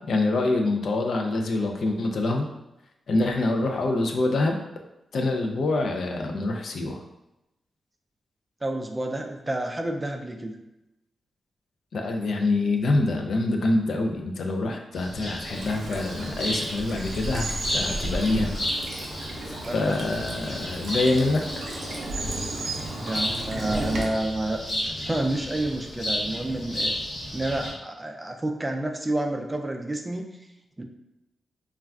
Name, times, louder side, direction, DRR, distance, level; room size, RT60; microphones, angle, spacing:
voice 1, 0.1-2.5 3.1-4.6 5.1-7.0 11.9-18.5 19.5-21.7, left 2 dB, 70° left, 3 dB, 0.3 m, -25 dB
voice 2, 8.6-10.5 19.6-20.0 23.0-27.0 27.3-30.3 30.8-30.9, right 1 dB, 20° right, 4 dB, 0.3 m, -29 dB
sound 1, 14.9-27.7, equal, 50° left, 1.0 m, -33 dB
Bird vocalization bird call bird song / Stream, 15.4-24.0, right 2 dB, 90° right, 0.5 m, -34 dB
2.3 x 2.2 x 3.4 m, 0.92 s
cardioid pair, 90°, 0 cm